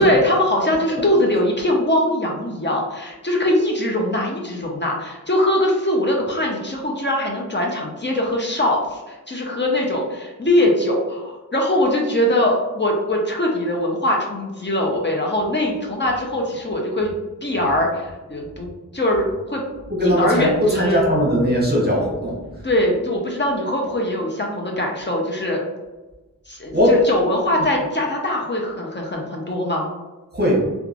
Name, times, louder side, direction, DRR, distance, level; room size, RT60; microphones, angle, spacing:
voice 1, 0.0-17.1 17.4-18.7 18.9-19.6 20.0-21.0 22.6-25.6 26.5-29.9, left 1 dB, 30° left, -1 dB, 0.5 m, -21 dB
voice 2, 19.9-22.6 26.7-27.0 27.6-27.7 30.3-30.6, equal, 25° right, -4 dB, 0.9 m, -19 dB
2.9 x 2.3 x 2.4 m, 1.1 s
wide cardioid pair, 50°, 36 cm